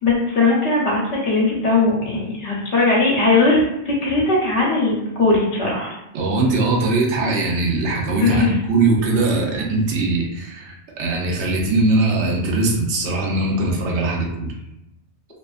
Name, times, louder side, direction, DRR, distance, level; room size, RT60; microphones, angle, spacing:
voice 1, 0.0-5.9 8.2-8.5, left 3 dB, 85° left, -5 dB, 1.0 m, -19 dB
voice 2, 6.1-14.5, right 3 dB, 80° right, 0 dB, 0.9 m, -20 dB
2.6 x 2.4 x 2.3 m, 0.87 s
omnidirectional pair, 1.1 m